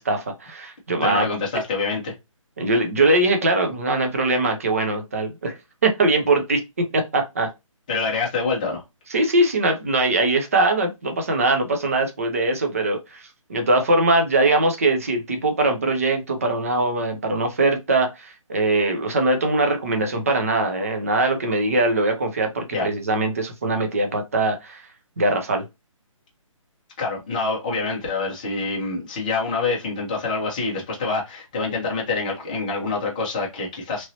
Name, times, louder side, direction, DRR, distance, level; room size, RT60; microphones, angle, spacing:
voice 1, 0.0-1.3 2.6-5.5 5.8-6.6 6.9-7.5 9.1-13.2 13.5-24.8 25.2-25.6, right 2 dB, 25° right, 0.5 m, -21 dB
voice 2, 1.0-2.1 7.9-8.8 22.7-22.9 27.0-34.0, left 3 dB, 15° left, 0.6 m, -26 dB
3.0 x 2.7 x 2.6 m
hypercardioid pair, 175°, 17 cm